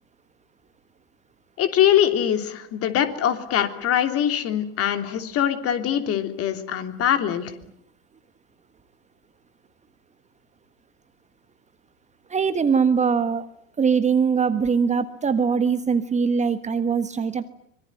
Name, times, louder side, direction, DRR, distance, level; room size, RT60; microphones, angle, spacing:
voice 1, 1.6-7.5, left 10 dB, 35° left, 8 dB, 3.2 m, -23 dB
voice 2, 12.3-13.5 13.8-17.5, right 6 dB, 20° right, 11 dB, 1.4 m, -22 dB
25.0 x 22.5 x 9.6 m, 0.70 s
hypercardioid pair, 90°, 38 cm